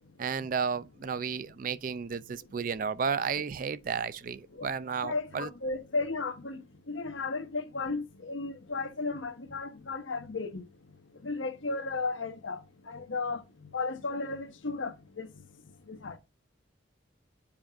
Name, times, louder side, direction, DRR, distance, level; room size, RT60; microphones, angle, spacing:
voice 1, 0.2-5.5, right 6 dB, 45° right, 0.4 m, -33 dB
voice 2, 5.0-6.6 6.9-10.6 11.2-12.6 12.9-13.4 13.7-15.3 15.9-16.2, left 3 dB, 85° left, 1.1 m, -34 dB
7.3 x 2.5 x 5.7 m
head